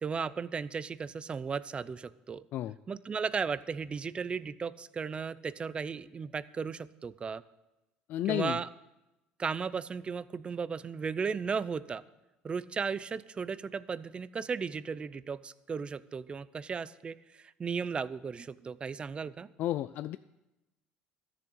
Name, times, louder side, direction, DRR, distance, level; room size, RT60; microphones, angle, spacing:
voice 1, 0.0-2.4 2.9-7.4 8.3-8.7 9.4-12.0 12.4-17.2 17.6-19.5, right 5 dB, 30° right, 17 dB, 0.5 m, -35 dB
voice 2, 8.1-8.6 19.6-20.2, left 13 dB, 60° left, 13 dB, 0.3 m, -32 dB
13.5 x 7.1 x 8.1 m, 0.99 s
supercardioid pair, 90°, 4 cm